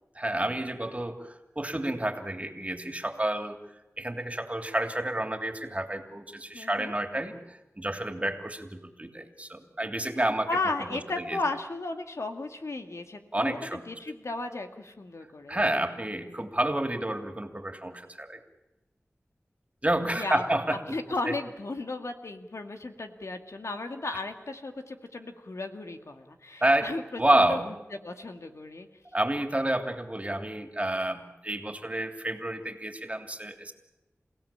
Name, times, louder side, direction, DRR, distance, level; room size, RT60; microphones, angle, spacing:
voice 1, 0.1-3.6 4.0-7.3 7.8-10.5 10.9-11.4 13.3-13.8 15.5-18.4 19.8-20.8 21.3-21.4 26.6-26.9 27.2-27.7 29.1-33.7, right 1 dB, 30° right, 6 dB, 3.0 m, -29 dB
voice 2, 6.5-6.9 10.5-15.6 20.1-20.4 20.7-27.0 27.3-27.7 28.0-28.9, left 2 dB, 80° left, 6 dB, 2.0 m, -35 dB
29.0 x 17.0 x 8.8 m, 1.0 s
wide cardioid pair, 45°, 5 cm